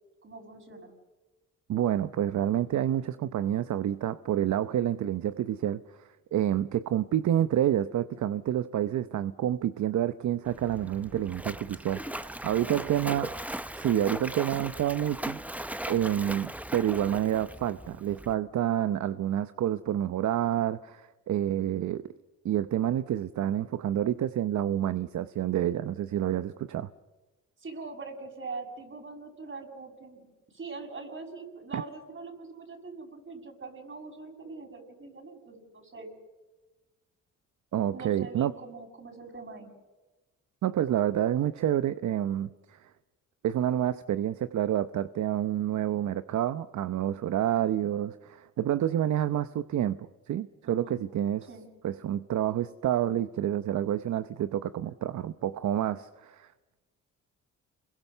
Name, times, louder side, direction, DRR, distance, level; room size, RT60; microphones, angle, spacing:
voice 1, 0.2-0.9 12.6-12.9 27.6-36.1 37.9-39.7 50.6-51.0 51.5-51.7, right 3 dB, 40° right, 5 dB, 6.5 m, -43 dB
voice 2, 1.7-13.3 13.8-15.4 15.9-22.1 22.4-26.9 31.7-31.8 37.7-38.5 40.6-42.9 43.4-50.0 50.3-51.5 51.8-56.5, right 11 dB, 65° right, 12 dB, 0.9 m, -28 dB
Splash splatter, 10.4-18.3, right 1 dB, 5° right, 1.0 m, -38 dB
28.0 x 22.0 x 6.8 m, 1.2 s
cardioid pair, 75°, 31 cm